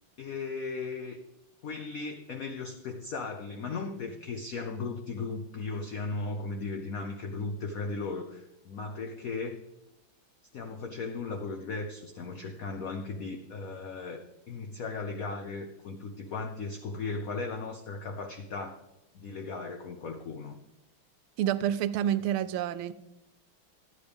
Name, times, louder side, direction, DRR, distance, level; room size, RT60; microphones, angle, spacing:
voice 1, 0.2-1.2 1.6-9.6 10.5-18.8 19.1-20.6, left 4 dB, 85° left, 5 dB, 0.7 m, -37 dB
voice 2, 21.4-22.9, right 11 dB, 80° right, 14 dB, 1.4 m, -28 dB
13.0 x 9.6 x 3.4 m, 0.91 s
omnidirectional pair, 2.4 m